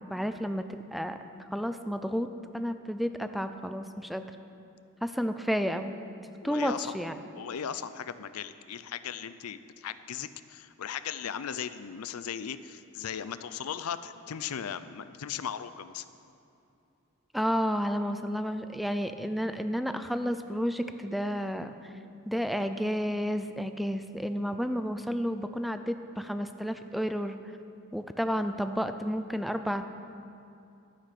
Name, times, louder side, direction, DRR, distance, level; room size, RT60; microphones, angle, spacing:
voice 1, 0.1-1.2 1.5-2.3 2.5-4.3 5.0-6.0 6.4-7.2 17.3-21.9 22.3-27.4 27.9-29.8, equal, ahead, 8 dB, 0.4 m, -31 dB
voice 2, 6.4-6.9 7.3-16.0, left 8 dB, 80° left, 13 dB, 0.5 m, -37 dB
12.0 x 9.9 x 6.0 m, 2.6 s
head